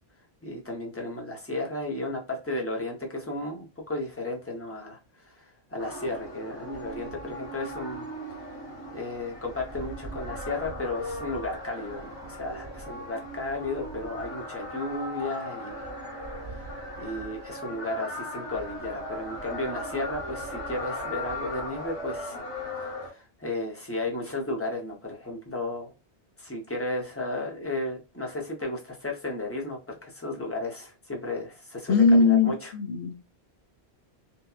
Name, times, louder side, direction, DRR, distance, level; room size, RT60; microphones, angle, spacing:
voice 1, 0.4-8.1 8.9-15.9 16.3-22.5 22.8-25.9 26.4-32.7, left 2 dB, 15° left, 0.5 m, -34 dB
sound 1, 5.8-23.1, left 1 dB, 30° left, 1.2 m, -38 dB
voice 2, 31.9-33.1, left 4 dB, 70° left, 0.8 m, -20 dB
2.7 x 2.2 x 2.3 m
omnidirectional pair, 1.1 m